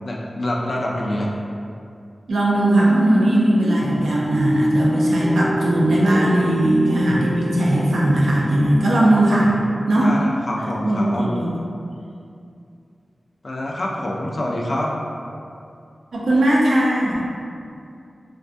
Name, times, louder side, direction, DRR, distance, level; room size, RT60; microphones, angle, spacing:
voice 1, 0.0-1.3 10.0-11.3 13.4-14.9, left 1 dB, 55° left, -2 dB, 0.4 m, -26 dB
voice 2, 2.3-9.5 9.9-10.1 10.8-11.5 16.1-17.2, right 1 dB, 90° right, -5 dB, 0.4 m, -18 dB
sound 1, 2.9-10.2, equal, 50° right, 0.6 m, -28 dB
2.4 x 2.2 x 2.5 m, 2.5 s
cardioid pair, 55°, 0 cm